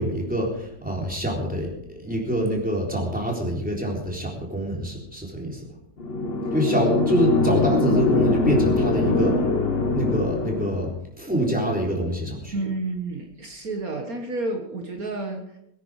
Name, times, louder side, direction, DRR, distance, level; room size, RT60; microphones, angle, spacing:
voice 1, 0.0-5.7 6.5-9.4 9.9-12.5, right 1 dB, 5° right, -2 dB, 3.8 m, -26 dB
sound 1, 6.0-10.9, left 3 dB, 40° left, 1.3 m, -22 dB
voice 2, 12.5-15.6, right 2 dB, 55° right, 2 dB, 1.9 m, -30 dB
22.5 x 9.7 x 4.9 m, 0.81 s
omnidirectional pair, 1.8 m